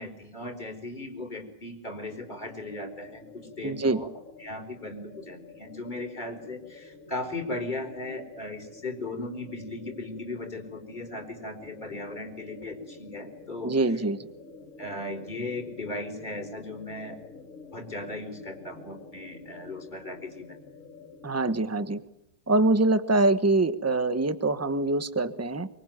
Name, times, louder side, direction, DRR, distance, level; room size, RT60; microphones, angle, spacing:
voice 1, 0.0-3.2 3.6-4.1 4.4-13.7 14.8-17.2 17.7-20.6, left 2 dB, 25° left, 3 dB, 4.7 m, -37 dB
sound 1, 1.9-21.6, left 4 dB, 50° left, 2.7 m, -49 dB
voice 2, 3.6-4.0 13.6-14.3 21.2-22.0 22.5-25.7, right 2 dB, 10° right, 12 dB, 1.0 m, -24 dB
24.5 x 23.5 x 9.3 m, 0.80 s
omnidirectional pair, 1.8 m